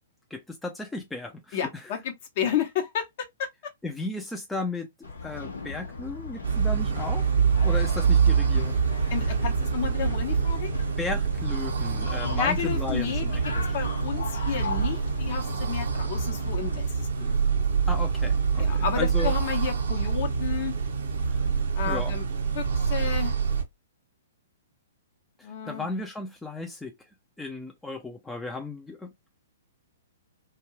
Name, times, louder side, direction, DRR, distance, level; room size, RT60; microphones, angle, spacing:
voice 1, 0.3-1.9 3.8-4.9 5.2-7.3 7.6-8.8 11.0-13.7 17.9-19.3 21.3-21.4 21.9-22.1 25.4-26.9 27.4-29.3, left 2 dB, 5° left, 0.5 m, -35 dB
voice 2, 1.5-3.5 9.1-10.7 12.4-17.3 18.6-20.8 21.7-22.2 22.5-23.3 25.4-25.9, left 8 dB, 45° left, 0.9 m, -31 dB
sound 1, 5.0-16.8, left 4 dB, 75° left, 0.8 m, -38 dB
sound 2, 6.4-23.6, right 6 dB, 70° right, 0.8 m, -26 dB
2.6 x 2.3 x 2.9 m
figure-of-eight pair, 115°, 0 cm